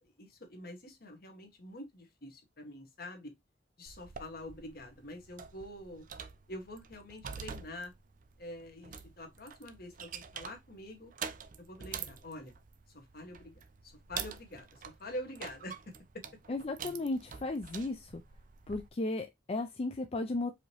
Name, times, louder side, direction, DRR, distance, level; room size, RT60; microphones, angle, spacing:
voice 1, 0.0-3.3 3.8-6.0 6.5-7.9 8.4-11.1 11.6-12.5 12.9-16.2, left 1 dB, 60° left, 1.3 m, -46 dB
sound 1, 3.9-18.9, right 7 dB, 50° right, 0.5 m, -47 dB
voice 2, 16.5-18.2 18.7-20.5, left 2 dB, 35° left, 0.4 m, -35 dB
4.9 x 2.9 x 3.0 m
head